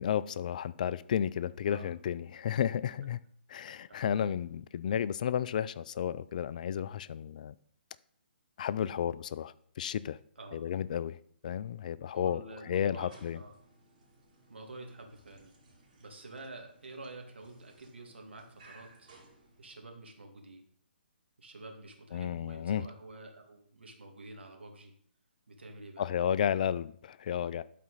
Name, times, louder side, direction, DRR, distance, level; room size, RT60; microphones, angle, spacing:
voice 1, 0.0-3.2 3.5-7.5 8.6-10.2 10.5-11.2 11.4-13.4 22.1-22.9 26.0-27.6, left 9 dB, 45° left, 18 dB, 0.3 m, -32 dB
voice 2, 3.9-4.2 10.4-10.7 12.1-13.5 14.5-15.5 16.0-19.1 19.6-20.6 21.4-24.9 25.5-26.1, right 2 dB, 75° right, 2 dB, 2.0 m, -48 dB
sound 1, 12.9-20.1, right 2 dB, 45° right, 2.7 m, -61 dB
12.0 x 4.2 x 4.0 m, 0.63 s
figure-of-eight pair, 140°, 6 cm